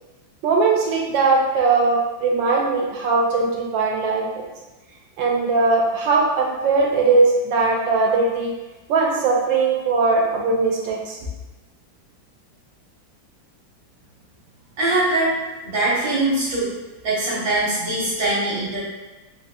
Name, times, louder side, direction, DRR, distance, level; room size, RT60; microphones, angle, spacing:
voice 1, 0.4-4.5 5.2-8.5 8.9-11.2, right 3 dB, 85° right, -1 dB, 1.3 m, -20 dB
voice 2, 14.8-15.3 15.6-16.7 17.0-18.8, right 2 dB, 65° right, -10 dB, 1.4 m, -22 dB
3.6 x 2.5 x 2.7 m, 1.1 s
omnidirectional pair, 2.0 m